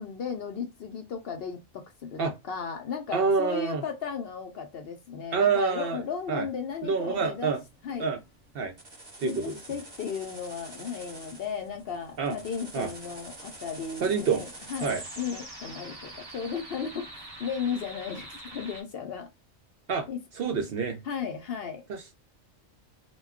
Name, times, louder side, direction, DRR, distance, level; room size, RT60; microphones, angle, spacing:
voice 1, 0.0-2.2 2.5-7.5 7.8-8.1 9.2-19.3 20.1-20.2 21.0-21.8, left 6 dB, 65° left, 0.7 m, -35 dB
voice 2, 3.1-3.8 5.3-6.0 6.3-6.5 6.8-7.6 8.0-8.2 8.5-8.7 9.2-9.6 12.2-12.4 12.7-12.9 14.0-14.4 14.8-15.0 19.9-20.1 20.3-21.0 21.9-22.1, right 5 dB, 60° right, 0.6 m, -27 dB
sound 1, 6.0-18.8, right 1 dB, 25° right, 0.8 m, -45 dB
2.2 x 2.2 x 3.5 m
omnidirectional pair, 1.3 m